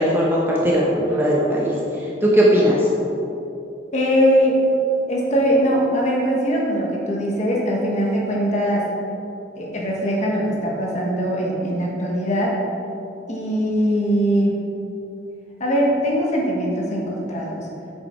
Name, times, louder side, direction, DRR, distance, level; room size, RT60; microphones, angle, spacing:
voice 1, 0.0-1.7 2.2-2.8, equal, 10° right, -5 dB, 1.0 m, -18 dB
voice 2, 3.9-4.6 5.1-8.8 9.6-12.5 13.3-14.6 15.6-17.7, equal, 40° left, -3 dB, 1.3 m, -21 dB
7.7 x 6.9 x 4.4 m, 2.9 s
head